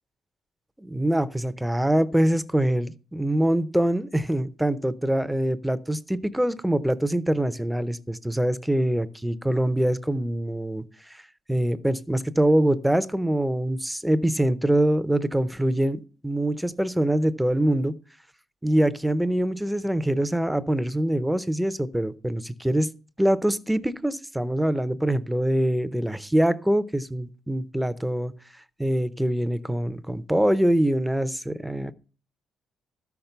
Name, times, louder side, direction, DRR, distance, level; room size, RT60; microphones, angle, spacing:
voice 1, 0.8-10.8 11.1-11.2 11.5-17.9 18.6-22.9 23.2-28.3 28.8-31.9, right 1 dB, 5° right, 0.6 m, -24 dB
13.0 x 5.9 x 6.8 m
cardioid pair, 110°, 0 cm